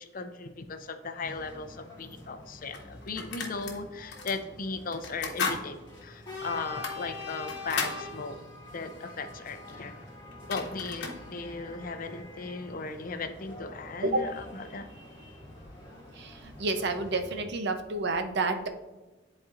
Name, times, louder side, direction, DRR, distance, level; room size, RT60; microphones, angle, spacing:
voice 1, 0.0-8.4 8.7-9.9 10.5-14.9, left 4 dB, 50° left, 8 dB, 0.5 m, -37 dB
sound 1, 1.2-17.4, left 2 dB, 25° left, 1.9 m, -46 dB
sound 2, 2.0-2.1 2.7-3.8 4.1-4.4 4.9-5.6 6.0-6.1 6.7-8.0 10.0-10.1 10.3-11.2, left 5 dB, 65° left, 1.1 m, -35 dB
voice 2, 16.2-18.7, right 2 dB, 60° right, 7 dB, 0.6 m, -29 dB
10.5 x 4.3 x 2.5 m, 1.1 s
head